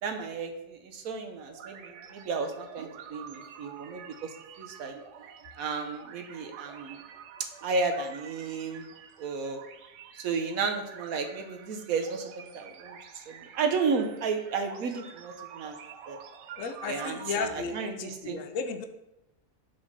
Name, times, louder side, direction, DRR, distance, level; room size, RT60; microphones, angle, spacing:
voice 1, 0.0-4.3 4.6-4.9 5.6-7.0 7.6-8.9 9.2-9.6 10.1-15.8 16.1-16.2 16.9-18.4, right 4 dB, 65° right, 5 dB, 1.1 m, -33 dB
sound 1, 1.5-17.5, right 8 dB, 90° right, 1.1 m, -48 dB
voice 2, 16.6-18.8, left 5 dB, 65° left, 8 dB, 0.9 m, -34 dB
4.9 x 4.1 x 6.0 m, 0.90 s
omnidirectional pair, 1.7 m